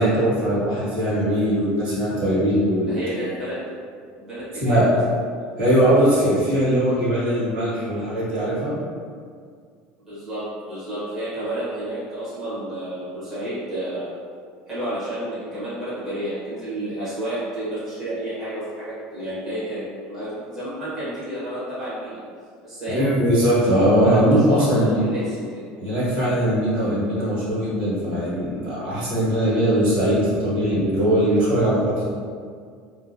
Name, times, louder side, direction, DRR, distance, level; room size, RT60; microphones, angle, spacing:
voice 1, 0.0-3.0 4.5-4.9 5.6-8.8 22.9-25.0 25.8-32.0, equal, 45° right, -9 dB, 1.4 m, -20 dB
voice 2, 2.9-3.6 4.2-5.0 10.1-14.2 14.7-22.2 22.6-23.1 24.0-25.6, right 1 dB, 10° right, -13 dB, 1.0 m, -30 dB
3.9 x 2.5 x 2.6 m, 2.1 s
cardioid pair, 175°, 4 cm